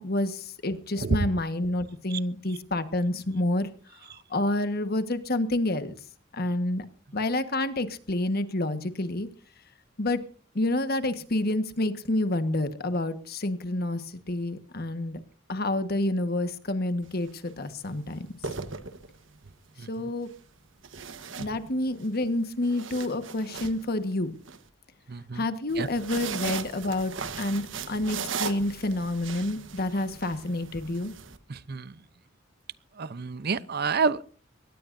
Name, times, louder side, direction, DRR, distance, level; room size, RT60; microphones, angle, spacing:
voice 1, 0.0-3.7 4.0-5.9 6.3-6.8 7.1-9.3 10.0-10.2 10.5-15.2 15.5-18.3 19.9-20.3 21.4-24.3 25.3-31.1, left 1 dB, 50° left, 10 dB, 1.5 m, -28 dB
sound 1, 17.0-17.3 18.2-19.4 20.8-22.1 22.5-24.6 25.7-31.4, right 6 dB, 70° right, 1.3 m, -38 dB
voice 2, 19.8-20.1 25.1-25.4 25.8-25.9 31.5-31.9 33.0-34.3, right 4 dB, 55° right, 16 dB, 0.7 m, -29 dB
23.0 x 18.5 x 2.7 m, 0.41 s
head